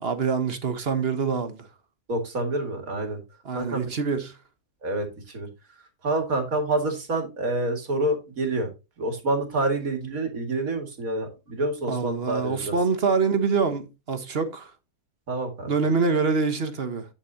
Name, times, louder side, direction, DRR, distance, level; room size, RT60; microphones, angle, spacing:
voice 1, 0.0-1.6 3.4-4.4 11.9-14.7 15.7-17.1, right 5 dB, 45° right, 1.2 m, -25 dB
voice 2, 2.1-3.2 3.5-3.9 4.8-5.1 5.3-5.5 6.0-8.7 9.0-12.7 15.3-15.7, right 2 dB, 60° right, 2.5 m, -27 dB
8.8 x 8.1 x 2.8 m
omnidirectional pair, 1.6 m